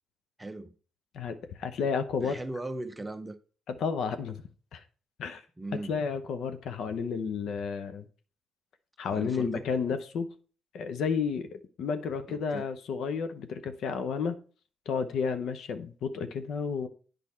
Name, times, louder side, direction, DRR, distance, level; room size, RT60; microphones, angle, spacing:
voice 1, 0.4-0.7 2.2-3.4 5.6-5.9 9.0-9.7 12.3-12.7, right 2 dB, 15° right, 0.7 m, -38 dB
voice 2, 1.1-2.4 3.7-4.4 4.7-4.8 5.2-5.4 5.9-8.1 9.0-10.3 10.7-14.3 14.9-16.9, left 6 dB, 70° left, 0.8 m, -31 dB
8.5 x 5.1 x 4.3 m
cardioid pair, 90°, 0 cm